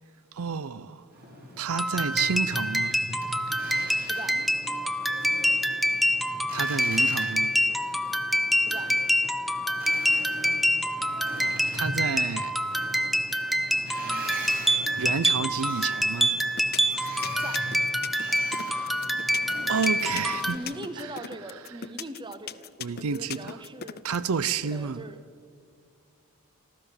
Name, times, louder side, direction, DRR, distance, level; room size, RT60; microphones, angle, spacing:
voice 1, 0.3-1.1 1.6-3.0 3.5-3.6 6.5-7.6 11.7-12.6 15.0-16.4 18.2-19.2 19.7-20.6 21.0-21.1 22.8-23.6 24.0-25.0, right 6 dB, 70° right, 0.5 m, -30 dB
Boat Water vehicle, 1.1-20.9, right 1 dB, 40° right, 4.7 m, -41 dB
sound 1, 1.7-20.6, equal, ahead, 0.5 m, -26 dB
voice 2, 4.1-4.5 8.6-9.0 17.4-17.6 20.5-24.0 24.6-25.2, right 1 dB, 20° right, 1.0 m, -40 dB
sound 2, 16.4-24.2, left 9 dB, 45° left, 0.6 m, -37 dB
28.0 x 13.0 x 7.1 m
head